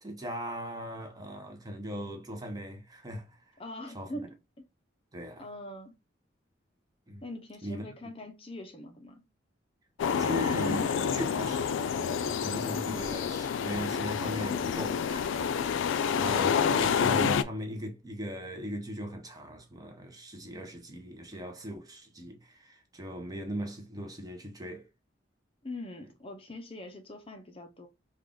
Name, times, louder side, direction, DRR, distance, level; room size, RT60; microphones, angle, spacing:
voice 1, 0.0-3.5 3.9-4.1 5.1-5.5 7.1-7.2 7.6-7.8 10.2-15.8 16.1-24.9, equal, 20° right, 0.7 m, -39 dB
voice 2, 3.6-4.6 5.4-6.0 7.2-9.2 12.9-13.1 16.0-16.5 25.6-27.9, left 1 dB, 30° left, 0.6 m, -43 dB
sound 1, 10.0-17.4, left 7 dB, 85° left, 0.3 m, -28 dB
3.5 x 2.4 x 3.6 m
head